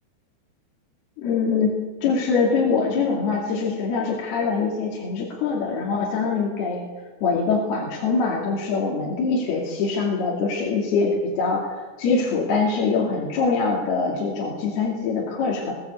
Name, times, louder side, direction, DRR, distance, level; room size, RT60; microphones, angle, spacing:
voice 1, 1.2-1.7 2.0-6.9 7.2-15.8, left 4 dB, 60° left, -2 dB, 4.2 m, -23 dB
21.0 x 17.0 x 8.3 m, 1.3 s
omnidirectional pair, 5.4 m